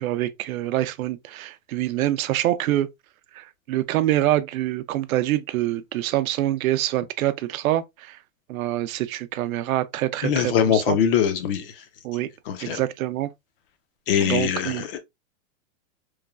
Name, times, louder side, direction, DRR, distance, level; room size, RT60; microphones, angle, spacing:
voice 1, 0.0-2.9 3.4-8.2 8.5-11.0 12.0-12.3 12.6-13.3 14.2-14.8, right 14 dB, 85° right, 0.5 m, -25 dB
voice 2, 10.2-11.7 12.5-12.8 14.1-15.0, left 8 dB, 45° left, 0.5 m, -22 dB
3.1 x 2.2 x 2.3 m
supercardioid pair, 155°, 40 cm